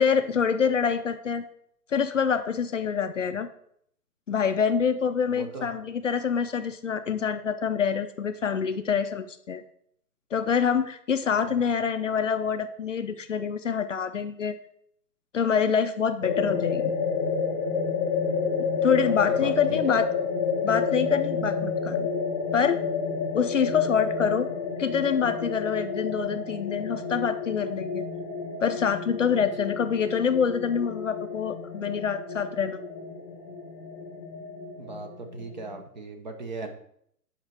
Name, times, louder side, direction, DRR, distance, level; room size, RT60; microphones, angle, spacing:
voice 1, 0.0-1.4 1.9-3.5 4.3-9.6 10.3-14.6 15.3-16.9 18.8-20.1 20.6-22.1 22.5-22.8 23.3-24.5 24.8-28.0 28.6-32.8, left 6 dB, 50° left, 10 dB, 0.5 m, -26 dB
voice 2, 5.3-5.7 11.6-11.7 19.0-19.1 19.4-19.8 34.8-36.7, right 3 dB, 25° right, 5 dB, 0.7 m, -38 dB
sound 1, 16.2-35.8, left 5 dB, 20° left, 0.9 m, -30 dB
8.7 x 5.3 x 4.6 m, 0.69 s
hypercardioid pair, 150°, 50 cm